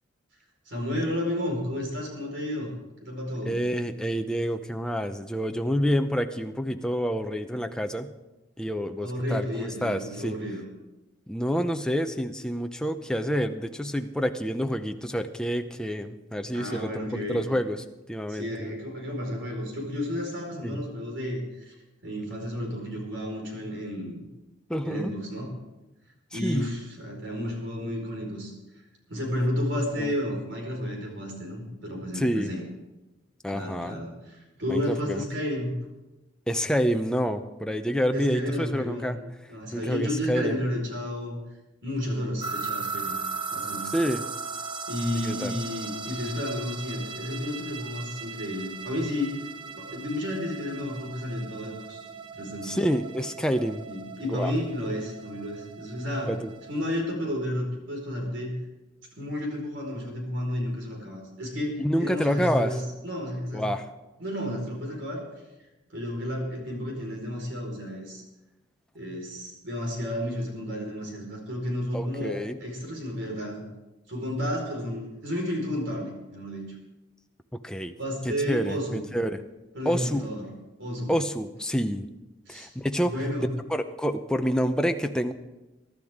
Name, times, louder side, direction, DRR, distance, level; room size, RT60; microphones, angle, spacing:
voice 1, 0.7-2.7 3.0-3.6 9.0-10.6 16.5-17.7 18.3-21.7 22.0-24.2 24.8-25.5 26.3-28.5 29.1-32.6 33.5-35.8 38.1-39.2 39.5-41.4 41.8-43.2 43.5-43.9 44.9-49.4 49.8-52.0 52.3-52.8 53.9-56.3 56.7-58.6 59.2-63.7 64.2-65.2 65.9-68.2 68.9-73.6 74.1-76.8 78.0-79.0 79.7-80.5 80.8-81.2 82.5-82.7 83.1-83.5, left 1 dB, 65° right, 0 dB, 4.7 m, -32 dB
voice 2, 3.4-8.1 8.6-10.4 11.3-17.8 18.1-18.7 20.6-20.8 24.7-25.1 26.3-26.7 30.0-30.1 32.1-32.5 33.4-34.0 34.7-35.2 36.5-39.2 39.7-40.6 43.9-44.2 45.1-45.5 52.6-53.8 54.2-54.5 56.3-56.5 61.8-62.8 63.5-63.9 71.9-72.6 77.6-77.9 78.2-79.4 79.8-80.2 81.1-82.1 82.5-83.1 83.7-85.3, equal, 5° left, 6 dB, 0.6 m, -28 dB
sound 1, 42.4-57.0, right 5 dB, 25° right, 0.8 m, -38 dB
23.0 x 12.0 x 3.6 m, 1.0 s
head